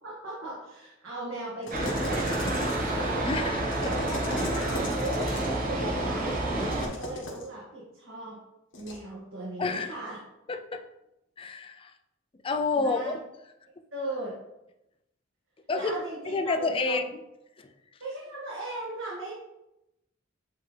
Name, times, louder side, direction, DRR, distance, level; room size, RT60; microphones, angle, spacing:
voice 1, 0.0-2.9 3.8-5.2 5.6-8.4 8.8-10.2 12.7-13.1 13.9-14.3 15.7-17.0 18.0-19.3, right 1 dB, 90° right, -7 dB, 1.8 m, -38 dB
sound 1, 1.6-3.0 3.6-5.6 6.6-7.5 8.7-9.0, left 1 dB, 65° left, 1.6 m, -38 dB
sound 2, 1.7-6.9, right 1 dB, 45° right, 1.2 m, -29 dB
voice 2, 3.2-3.6 9.6-9.9 10.5-10.9 11.4-11.9 12.4-13.1 15.7-16.0 16.3-17.0 17.6-17.7, left 3 dB, 25° left, 6 dB, 0.4 m, -29 dB
8.8 x 3.5 x 3.3 m, 0.89 s
head